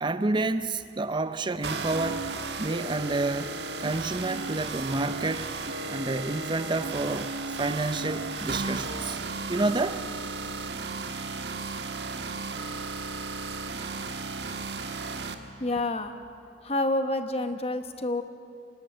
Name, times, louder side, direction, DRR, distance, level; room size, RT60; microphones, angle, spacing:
voice 1, 0.0-2.3 2.6-5.5 5.9-9.2 9.5-10.1, right 2 dB, 25° right, 11 dB, 0.6 m, -29 dB
sound 1, 1.6-15.3, right 3 dB, 70° right, 1.4 m, -34 dB
voice 2, 15.6-16.2 16.6-18.2, left 2 dB, 35° left, 8 dB, 1.2 m, -28 dB
26.0 x 19.5 x 7.8 m, 2.5 s
head